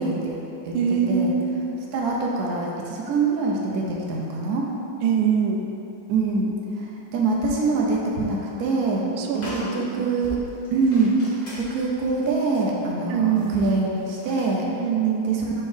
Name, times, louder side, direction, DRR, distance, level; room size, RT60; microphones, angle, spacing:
voice 1, 0.0-0.8 1.1-1.3 1.9-4.7 6.1-9.0 9.3-10.4 10.7-14.7 15.3-15.5, right 3 dB, 65° right, -2 dB, 0.9 m, -24 dB
voice 2, 0.7-1.7 5.0-5.7 9.2-10.1 13.1-13.6 14.8-15.4, right 7 dB, 80° right, 3 dB, 1.4 m, -23 dB
sound 1, 8.1-8.5 8.9-9.0 9.3-14.6, left 1 dB, 30° left, 0.8 m, -41 dB
4.4 x 4.4 x 4.9 m, 2.8 s
omnidirectional pair, 2.2 m